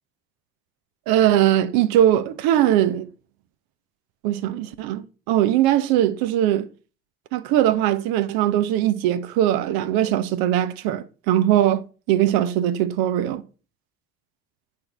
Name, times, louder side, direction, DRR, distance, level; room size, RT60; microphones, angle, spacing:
voice 1, 1.1-3.1 4.2-6.7 7.3-13.4, right 12 dB, 55° right, 1.0 m, -20 dB
8.6 x 4.6 x 5.1 m
figure-of-eight pair, 65°, 44 cm